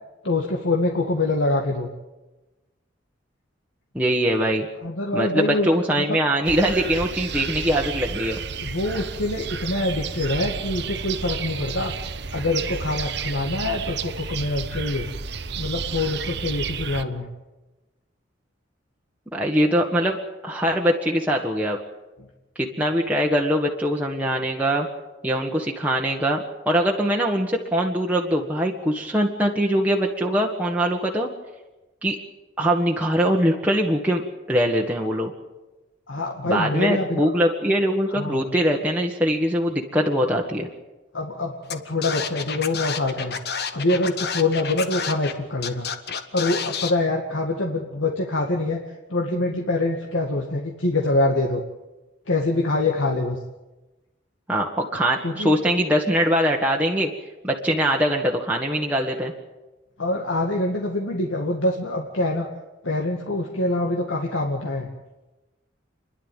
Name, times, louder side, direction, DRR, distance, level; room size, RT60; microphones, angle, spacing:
voice 1, 0.2-1.9 4.8-6.2 8.6-11.9 12.3-15.1 15.6-17.3 36.1-37.3 38.2-38.4 41.1-43.3 43.7-45.9 46.3-48.8 49.1-51.6 52.3-53.4 55.2-55.6 60.0-62.5 62.8-64.9, left 2 dB, 80° left, 0 dB, 2.1 m, -25 dB
voice 2, 3.9-4.7 5.1-8.4 19.3-20.2 20.4-21.8 22.5-24.9 25.2-31.3 32.0-32.2 32.6-34.2 34.5-35.3 36.4-40.7 54.5-57.1 57.4-59.3, equal, 10° right, -1 dB, 1.6 m, -22 dB
sound 1, 6.4-17.0, right 5 dB, 55° right, 1.0 m, -31 dB
Scratching (performance technique), 41.7-41.8 42.0-45.3 45.6-46.9, left 6 dB, 55° left, 1.5 m, -29 dB
29.5 x 11.5 x 9.2 m, 1.1 s
head